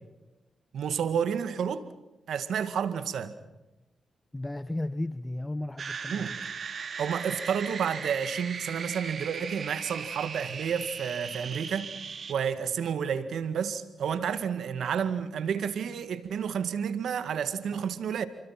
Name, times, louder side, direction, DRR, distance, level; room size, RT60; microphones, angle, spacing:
voice 1, 0.7-1.9 2.3-3.3 6.1-6.4 7.0-11.9 12.3-18.3, right 7 dB, 80° right, 2.0 m, -30 dB
voice 2, 4.3-6.4 17.7-17.8, left 1 dB, 15° left, 1.2 m, -34 dB
sound 1, 5.8-12.3, right 6 dB, 60° right, 2.6 m, -38 dB
28.0 x 24.5 x 6.0 m
cardioid pair, 60°, 0 cm